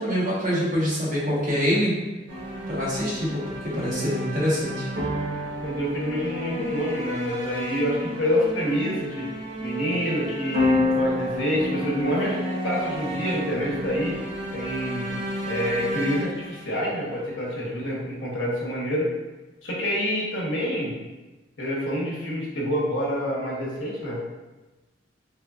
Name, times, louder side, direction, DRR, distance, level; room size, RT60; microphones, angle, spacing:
voice 1, 0.0-2.0 2.7-4.9, equal, 45° right, -7 dB, 1.1 m, -25 dB
sound 1, 2.3-17.6, left 1 dB, 80° right, 1.1 m, -30 dB
voice 2, 5.6-9.3 9.6-14.2 14.5-15.1 15.4-19.1 19.6-20.9 21.6-24.2, equal, 80° left, -4 dB, 1.0 m, -27 dB
3.7 x 3.2 x 2.3 m, 1.1 s
head